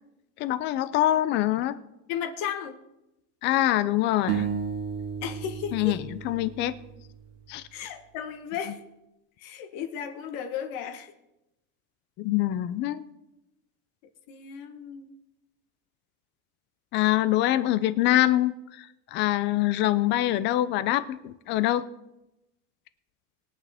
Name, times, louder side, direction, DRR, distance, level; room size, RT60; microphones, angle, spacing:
voice 1, 0.4-1.8 3.4-4.5 5.7-6.0 6.2-6.7 7.5-7.6 12.2-13.1 16.9-21.8, left 14 dB, 25° left, 0.3 m, -24 dB
voice 2, 2.1-2.8 5.2-6.0 7.7-8.8 9.4-11.1 14.3-15.1, left 8 dB, 45° left, 1.2 m, -34 dB
sound 1, 4.3-7.5, right 7 dB, 80° right, 1.6 m, -33 dB
21.5 x 8.5 x 3.4 m
supercardioid pair, 140°, 46 cm